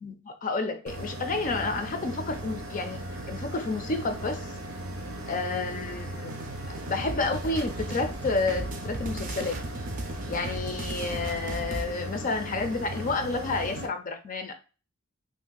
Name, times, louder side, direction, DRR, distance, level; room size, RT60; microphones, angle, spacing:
voice 1, 0.0-4.5 5.3-6.4 6.7-9.6 10.3-14.5, left 3 dB, 40° left, 7 dB, 0.4 m, -30 dB
sound 1, 0.9-13.9, right 1 dB, 85° right, 0.6 m, -37 dB
sound 2, 6.3-11.8, right 2 dB, 40° right, 0.5 m, -36 dB
2.6 x 2.5 x 3.7 m, 0.34 s
head